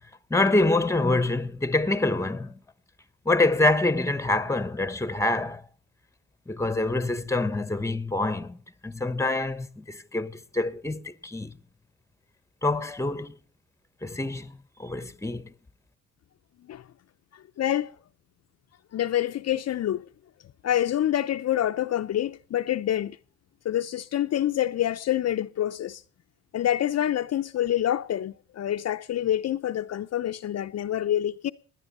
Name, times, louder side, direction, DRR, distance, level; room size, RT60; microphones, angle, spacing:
voice 1, 0.3-2.5 3.2-5.6 6.5-8.6 8.8-11.6 12.6-13.3 14.0-15.5, left 2 dB, 10° left, 1.1 m, -26 dB
voice 2, 17.6-17.9 18.9-20.1 20.6-23.2 23.6-26.0 26.5-31.5, left 11 dB, 55° left, 0.7 m, -26 dB
18.0 x 10.0 x 5.4 m
supercardioid pair, 65°, 32 cm